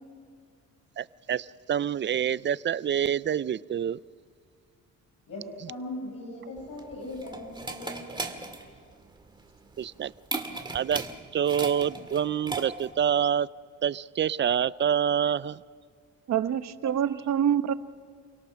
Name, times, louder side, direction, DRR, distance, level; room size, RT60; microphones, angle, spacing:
voice 1, 1.0-4.0 5.6-5.7 9.8-10.1 10.7-11.0 11.3-13.5 13.8-15.6 16.8-16.9, right 8 dB, 40° right, 19 dB, 0.5 m, -27 dB
voice 2, 5.3-8.8, left 1 dB, 75° left, -3 dB, 6.2 m, -40 dB
sound 1, 6.6-13.0, right 2 dB, 15° right, 1.9 m, -37 dB
voice 3, 16.3-17.7, right 9 dB, 60° right, 12 dB, 1.0 m, -26 dB
28.5 x 18.0 x 6.3 m, 2.1 s
cardioid pair, 90°, 30 cm